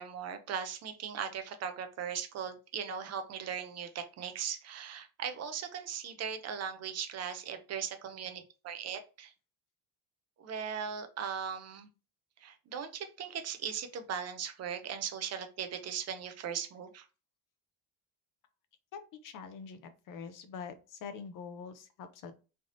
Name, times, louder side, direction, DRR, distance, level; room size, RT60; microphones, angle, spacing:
voice 1, 0.0-9.3 10.4-11.9 12.4-17.1, right 7 dB, 40° right, 8 dB, 0.4 m, -38 dB
voice 2, 18.9-19.8 20.1-22.3, left 6 dB, 50° left, 9 dB, 0.5 m, -44 dB
3.3 x 2.6 x 2.5 m, 0.33 s
cardioid pair, 175°, 41 cm